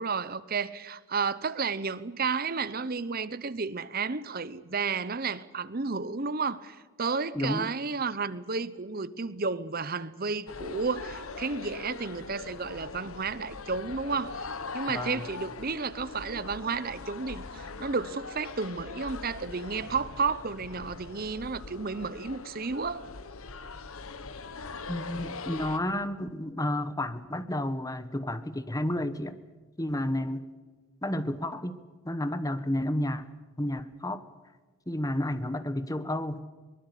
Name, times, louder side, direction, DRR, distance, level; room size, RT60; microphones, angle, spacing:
voice 1, 0.0-14.5 14.7-23.1, right 4 dB, 40° right, 0.8 m, -32 dB
voice 2, 7.3-7.7 14.9-15.3 24.9-29.4 29.8-30.5 31.0-33.3 33.6-34.2 34.9-36.4, left 1 dB, 15° left, 1.1 m, -31 dB
sound 1, 10.5-25.8, left 4 dB, 70° left, 1.3 m, -41 dB
23.0 x 20.5 x 8.4 m
head